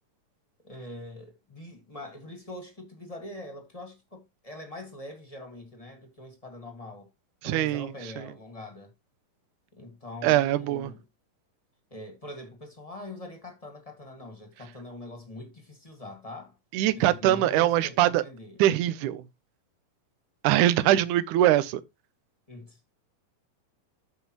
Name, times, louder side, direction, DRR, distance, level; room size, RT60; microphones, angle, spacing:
voice 1, 0.6-7.1 7.4-8.9 9.7-11.0 11.9-16.6 16.9-18.6 22.5-22.8, left 1 dB, 15° left, 1.2 m, -43 dB
voice 2, 7.4-7.9 10.2-10.9 16.7-18.2 18.6-19.2 20.4-21.8, right 13 dB, 75° right, 2.1 m, -22 dB
13.5 x 5.3 x 3.1 m
omnidirectional pair, 3.9 m